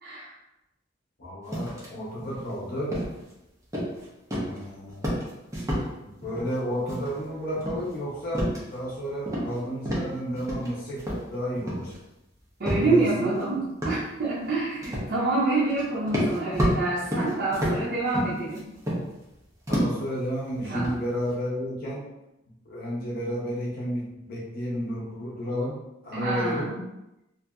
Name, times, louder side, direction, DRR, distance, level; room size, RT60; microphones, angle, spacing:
voice 1, 1.2-3.0 4.4-5.1 6.2-8.4 8.7-11.0 11.3-11.9 12.7-13.3 19.7-22.0 22.7-25.8 26.0-26.7, equal, 50° left, -6 dB, 0.7 m, -31 dB
sound 1, 1.5-1.9 2.2-2.5 2.9-3.3 3.7-4.1 4.3-4.6 4.9-5.9 6.2-6.6 6.9-7.3 7.6-8.9 9.2-9.6 9.8-10.7 11.0-12.0 12.7-12.9 13.4-13.5 13.8-14.1 14.8-15.1 15.7-19.3 19.7-20.1 20.5-21.3, equal, 15° right, 0.7 m, -29 dB
voice 2, 12.6-18.7 20.7-20.9 26.1-26.8, right 2 dB, 55° right, -8 dB, 0.7 m, -27 dB
2.7 x 2.6 x 2.3 m, 0.92 s
head